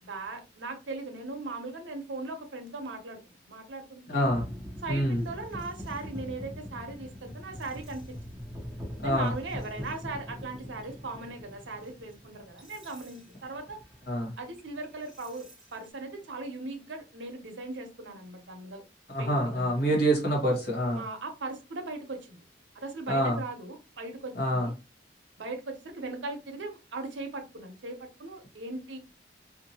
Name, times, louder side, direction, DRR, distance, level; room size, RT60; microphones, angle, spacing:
voice 1, 0.0-3.2 3.5-4.2 4.8-8.4 9.0-13.8 14.4-18.8 19.2-19.7 21.0-22.4 22.7-24.7 25.4-29.0, right 3 dB, 80° right, 5 dB, 0.7 m, -39 dB
voice 2, 4.1-4.4 4.9-5.2 9.0-9.3 14.1-14.3 19.1-21.0 23.1-23.4 24.3-24.7, equal, 55° left, -1 dB, 1.3 m, -26 dB
sound 1, 4.2-15.9, equal, 5° right, 0.6 m, -43 dB
2.6 x 2.6 x 2.8 m, 0.30 s
head